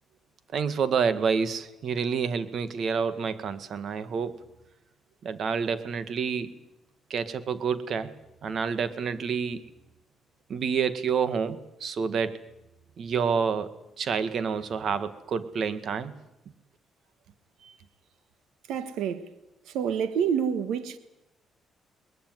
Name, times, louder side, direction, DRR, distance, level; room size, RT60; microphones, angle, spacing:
voice 1, 0.5-4.4 5.2-6.5 7.1-8.1 8.4-9.6 10.5-12.4 13.0-13.7 14.0-16.1, right 6 dB, 60° right, 1.9 m, -28 dB
voice 2, 18.7-19.3 19.7-21.0, right 7 dB, 85° right, 1.3 m, -28 dB
21.5 x 20.5 x 9.4 m
cardioid pair, 90°, 0 cm